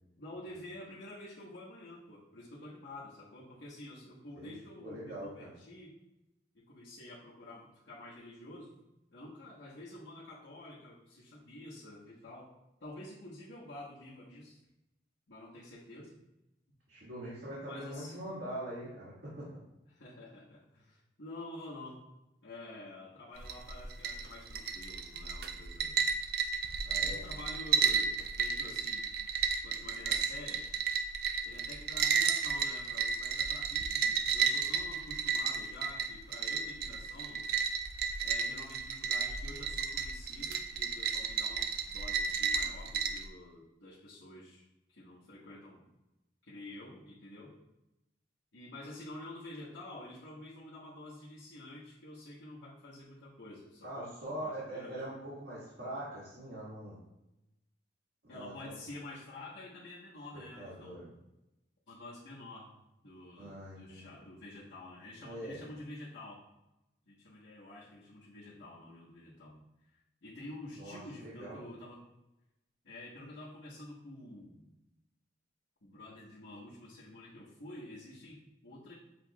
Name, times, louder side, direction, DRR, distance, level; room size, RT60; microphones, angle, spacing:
voice 1, 0.2-5.9 6.5-8.7 9.1-12.5 12.8-14.6 15.3-16.2 17.7-18.3 19.9-22.0 22.4-26.0 26.8-29.1 29.6-30.7 31.4-37.4 38.2-45.9 46.4-47.6 48.5-55.0 58.3-61.2 61.9-62.7 63.0-66.5 67.0-69.6 69.9-72.0 72.8-74.7 75.8-78.9, left 1 dB, 85° left, -9 dB, 1.2 m, -49 dB
voice 2, 4.3-5.5 16.9-19.5 26.8-27.2 53.8-56.9 58.2-58.8 60.3-61.1 63.4-64.1 65.2-65.6 70.8-71.6, right 1 dB, 75° right, -9 dB, 1.6 m, -43 dB
sound 1, 23.4-43.3, right 6 dB, 55° right, 0.4 m, -33 dB
7.5 x 3.0 x 2.3 m, 0.92 s
head